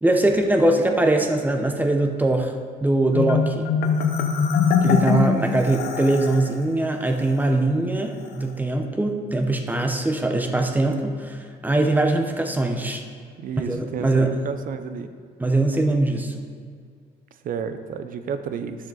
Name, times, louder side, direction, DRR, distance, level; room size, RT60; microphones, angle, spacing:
voice 1, 0.0-2.5 2.8-3.7 4.8-13.0 13.6-14.4 15.4-16.4, right 2 dB, 10° right, 4 dB, 0.9 m, -22 dB
Marimba xylophone, 3.1-6.5, left 6 dB, 70° left, 0.9 m, -22 dB
voice 2, 13.4-15.1 17.4-18.9, right 6 dB, 55° right, 10 dB, 0.7 m, -31 dB
10.5 x 6.9 x 4.0 m, 2.1 s
cardioid pair, 110°, 17 cm